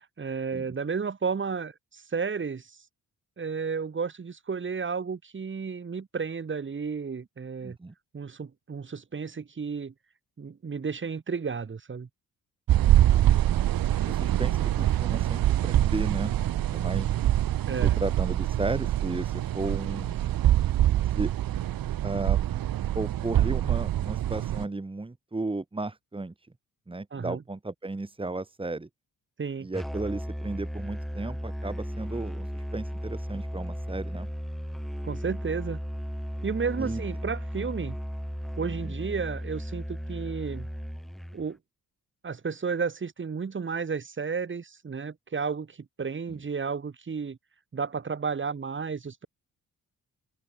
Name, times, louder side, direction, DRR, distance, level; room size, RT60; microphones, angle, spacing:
voice 1, 0.2-2.7 3.4-7.8 8.1-9.9 10.4-12.1 17.7-17.9 27.1-27.4 29.4-29.7 35.0-35.8 36.4-38.0 38.6-40.7 41.3-41.6 42.2-47.4 47.7-49.3, right 5 dB, 35° right, 6.4 m, -32 dB
voice 2, 7.6-7.9 13.1-13.7 14.1-16.3 16.6-17.1 17.8-20.2 21.0-21.3 22.0-22.4 22.9-26.3 26.9-28.9 29.6-34.3 36.8-37.0 38.6-38.9 46.3-46.4, right 2 dB, 15° right, 3.9 m, -34 dB
sound 1, 12.7-24.6, right 12 dB, 90° right, 2.0 m, -25 dB
Musical instrument, 29.7-41.5, equal, ahead, 2.1 m, -35 dB
open air
wide cardioid pair, 140°, 34 cm